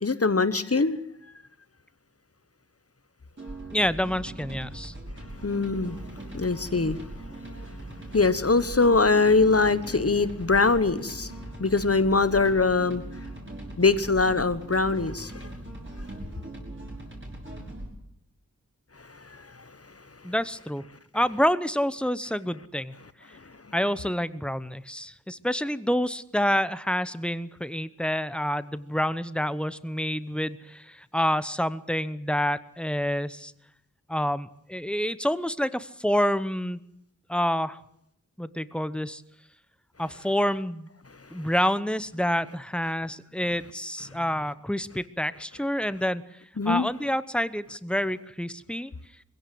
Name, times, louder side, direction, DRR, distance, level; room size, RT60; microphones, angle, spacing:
voice 1, 0.0-1.0 5.4-6.0 6.3-7.0 8.1-11.3 11.6-13.0 13.8-15.5 19.0-19.7 46.6-46.9, left 3 dB, 45° left, 14 dB, 1.3 m, -23 dB
sound 1, 3.4-17.9, right 1 dB, 35° right, 6.3 m, -40 dB
voice 2, 3.7-4.9 20.2-20.8 21.1-22.9 23.7-33.5 34.1-36.8 37.3-37.8 38.4-39.2 40.0-40.9 41.3-46.2 46.6-48.9, equal, 5° left, 15 dB, 0.9 m, -28 dB
21.5 x 16.5 x 7.8 m, 0.75 s
wide cardioid pair, 60°, 33 cm